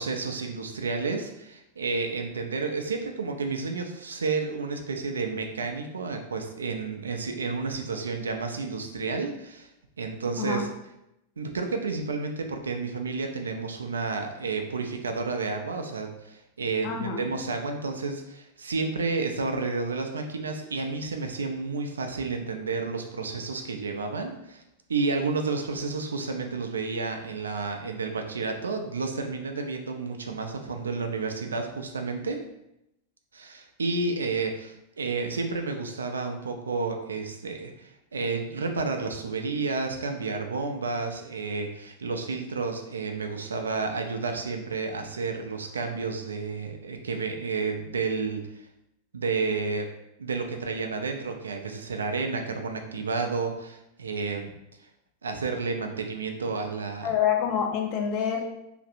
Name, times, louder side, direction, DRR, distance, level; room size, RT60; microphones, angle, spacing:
voice 1, 0.0-9.7 10.0-10.7 11.4-24.6 24.9-32.4 33.3-48.4 49.1-49.9 50.2-54.5 55.2-57.1, right 4 dB, 70° right, 4 dB, 0.4 m, -31 dB
voice 2, 16.8-17.2 57.0-58.5, left 7 dB, 40° left, 2 dB, 0.5 m, -26 dB
3.1 x 2.5 x 2.6 m, 0.85 s
figure-of-eight pair, 90°, 0 cm